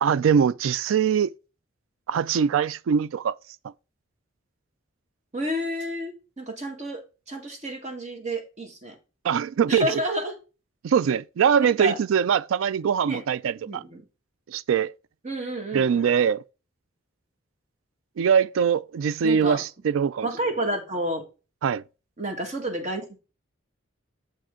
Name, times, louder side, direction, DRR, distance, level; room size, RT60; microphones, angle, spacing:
voice 1, 0.0-1.3 2.1-3.3 9.2-9.9 10.8-13.8 14.5-14.9 15.7-16.4 18.2-20.3 21.6-21.8, right 7 dB, 80° right, 0.3 m, -22 dB
voice 2, 5.3-9.0 9.7-10.4 11.6-12.0 13.0-13.2 13.7-14.0 15.2-16.1 19.2-19.6 20.2-21.3 22.2-23.2, right 1 dB, 35° right, 1.7 m, -30 dB
7.5 x 5.1 x 3.7 m
head